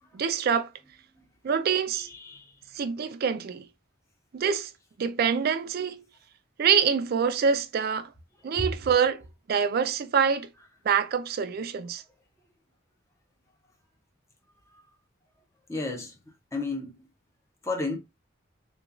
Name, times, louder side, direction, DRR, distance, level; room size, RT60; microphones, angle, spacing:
voice 1, 0.1-0.7 1.4-2.1 2.7-3.6 4.3-4.7 5.0-6.0 6.6-8.1 8.4-9.2 9.5-10.5 10.9-12.0, right 6 dB, 50° right, 0.3 m, -25 dB
voice 2, 1.9-2.5 15.7-16.1 16.5-17.0 17.6-18.0, left 3 dB, 15° left, 0.6 m, -32 dB
2.9 x 2.3 x 2.4 m
head